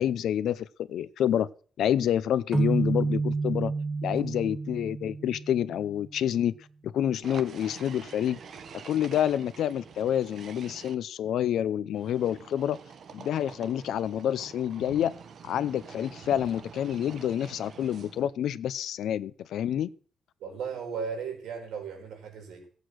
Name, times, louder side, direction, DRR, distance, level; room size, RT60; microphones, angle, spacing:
voice 1, 0.0-1.5 1.8-3.7 4.0-6.5 6.8-8.4 8.8-12.8 13.1-15.1 15.4-19.9, left 10 dB, 70° left, 0.6 m, -28 dB
sound 1, 2.5-6.0, right 3 dB, 20° right, 1.1 m, -30 dB
sound 2, 7.2-10.9 11.9-18.3, right 6 dB, 50° right, 1.1 m, -47 dB
voice 2, 20.4-22.7, right 6 dB, 85° right, 5.0 m, -36 dB
15.5 x 8.2 x 6.4 m
cardioid pair, 160°, 0 cm